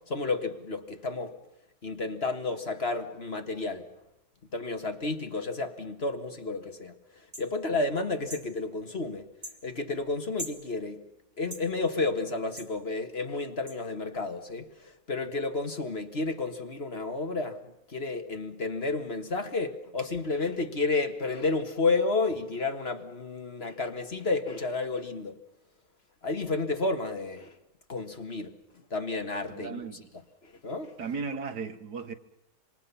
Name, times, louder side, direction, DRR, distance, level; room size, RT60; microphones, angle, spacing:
voice 1, 0.0-1.4 1.8-3.9 4.5-6.9 7.4-9.3 9.6-11.1 11.4-17.6 17.9-25.4 26.2-27.5 27.9-28.5 28.9-29.8 30.4-31.0, left 3 dB, 40° left, 1.9 m, -31 dB
sound 1, 7.3-7.5 8.3-8.5 9.4-9.6 10.4-10.6 11.5-11.7 12.6-12.7 13.7-13.8, equal, 25° right, 3.3 m, -40 dB
voice 2, 29.5-30.1 31.0-32.1, right 5 dB, 80° right, 2.1 m, -36 dB
26.5 x 26.0 x 5.6 m
omnidirectional pair, 1.8 m